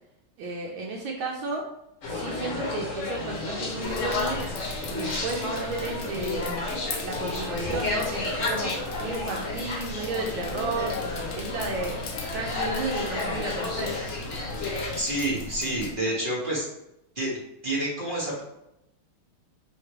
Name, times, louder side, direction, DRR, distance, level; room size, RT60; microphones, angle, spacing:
voice 1, 0.4-1.6 2.1-4.4 4.9-6.5 7.0-8.7 9.0-10.9 11.3-11.9 12.3-14.0, right 3 dB, 75° right, 0 dB, 1.3 m, -33 dB
sound 1, 2.0-15.0, left 2 dB, 50° left, 1.0 m, -32 dB
sound 2, 3.8-15.9, left 3 dB, 75° left, 0.8 m, -39 dB
voice 2, 15.0-16.7 17.2-17.4 17.6-18.4, right 1 dB, 45° right, -4 dB, 0.6 m, -28 dB
3.5 x 3.2 x 4.5 m, 0.85 s
omnidirectional pair, 2.3 m